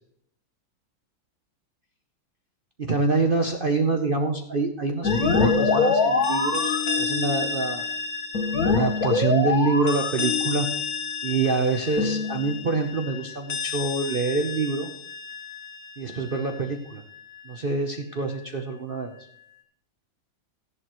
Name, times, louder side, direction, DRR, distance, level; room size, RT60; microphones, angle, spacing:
voice 1, 2.8-7.8 8.7-10.7 11.2-14.9 16.0-17.0 17.4-19.1, right 3 dB, 50° right, 4 dB, 0.6 m, -26 dB
sound 1, 5.0-16.6, left 4 dB, 50° left, 1.7 m, -26 dB
14.0 x 11.0 x 3.1 m, 0.70 s
omnidirectional pair, 2.2 m